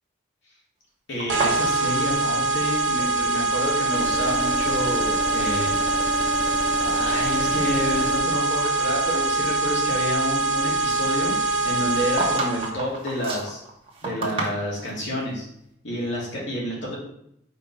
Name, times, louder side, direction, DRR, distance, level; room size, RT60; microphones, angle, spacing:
voice 1, 1.1-6.1 6.8-13.6 14.0-15.4 15.8-17.0, equal, 70° left, -4 dB, 2.5 m, -29 dB
sound 1, 1.2-3.2 3.4-4.2 4.9-5.4 5.7-6.0 6.6-6.7 7.3-8.8 9.1-9.3 11.5-15.0, right 2 dB, 30° right, 1.2 m, -33 dB
sound 2, 1.3-12.7, right 2 dB, 75° right, 1.0 m, -24 dB
sound 3, 3.9-8.2, left 1 dB, 5° right, 0.9 m, -31 dB
5.4 x 4.3 x 4.9 m, 0.75 s
head